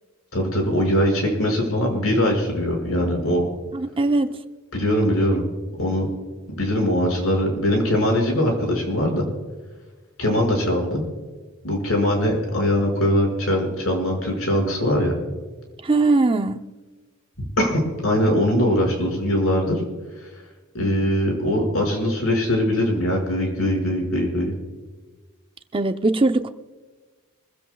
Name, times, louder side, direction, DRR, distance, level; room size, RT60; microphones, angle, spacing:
voice 1, 0.3-3.4 4.7-5.4 5.8-6.1 6.5-9.2 10.2-11.0 11.6-15.1 17.4-19.8 20.7-24.5, equal, 75° left, 5.6 m, -21 dB
voice 2, 3.7-4.4 15.8-16.6 25.7-26.5, right 2 dB, 25° right, 0.6 m, -20 dB
26.0 x 16.0 x 2.3 m
head